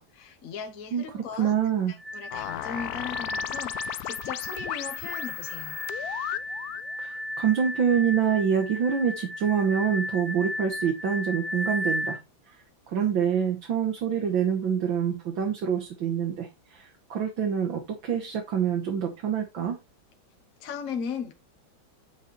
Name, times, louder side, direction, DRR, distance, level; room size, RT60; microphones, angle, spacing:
voice 1, 0.0-1.5 1.9-5.8 20.6-21.3, left 6 dB, 45° left, 1.5 m, -37 dB
voice 2, 0.9-1.9 7.0-12.2 12.9-19.8, right 7 dB, 75° right, 2.2 m, -26 dB
sound 1, 2.0-12.2, left 1 dB, 30° right, 1.5 m, -35 dB
sound 2, 2.3-6.9, left 12 dB, 75° left, 0.9 m, -35 dB
9.3 x 5.1 x 4.1 m
omnidirectional pair, 2.2 m